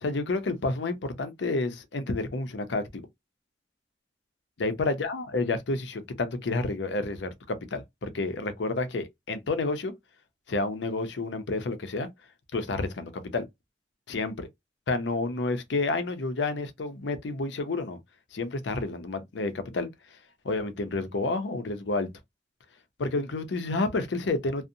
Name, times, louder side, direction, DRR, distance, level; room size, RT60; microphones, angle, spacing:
voice 1, 0.0-2.9 4.6-9.9 10.5-12.1 12.5-13.4 14.1-14.3 14.9-18.0 18.3-19.9 20.4-22.1 23.0-24.7, left 3 dB, 80° left, 0.6 m, -30 dB
2.6 x 2.1 x 2.5 m
head